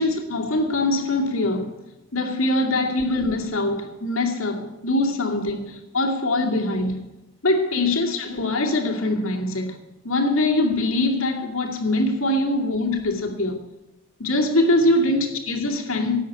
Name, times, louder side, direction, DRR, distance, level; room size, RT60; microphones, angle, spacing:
voice 1, 0.0-1.8 2.1-7.0 7.4-9.8 10.0-13.6 14.2-16.2, left 2 dB, 85° left, 2.4 m, -23 dB
13.0 x 8.6 x 9.4 m
head